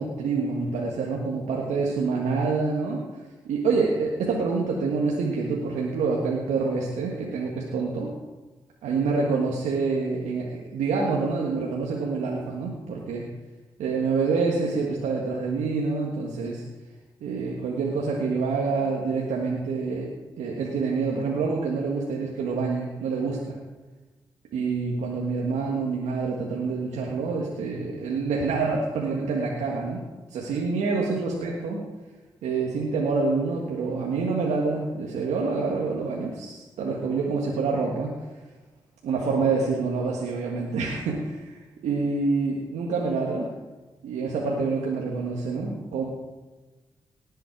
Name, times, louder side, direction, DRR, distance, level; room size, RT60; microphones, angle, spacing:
voice 1, 0.0-8.1 8.8-13.2 13.8-16.6 17.2-20.1 20.4-23.6 24.5-30.0 30.3-31.8 32.4-38.1 39.0-41.6 41.8-43.5 44.0-46.0, right 4 dB, 85° right, -2 dB, 1.7 m, -27 dB
19.0 x 7.7 x 4.6 m, 1.2 s
supercardioid pair, 45°, 12 cm